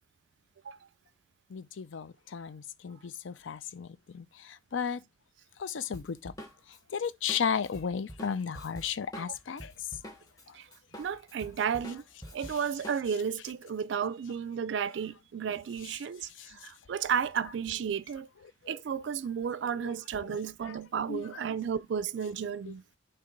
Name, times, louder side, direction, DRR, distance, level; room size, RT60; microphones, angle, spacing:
voice 1, 1.5-5.0 5.6-6.3 6.9-9.7 16.4-16.5 18.6-18.8 20.7-20.8 21.1-21.2 22.7-22.8, left 7 dB, 80° left, 0.5 m, -34 dB
Drum kit, 5.9-10.4 10.7-13.3, equal, 20° left, 1.3 m, -46 dB
voice 2, 11.0-12.0 12.3-18.3 18.7-22.8, right 7 dB, 70° right, 0.3 m, -33 dB
6.7 x 2.9 x 5.2 m
head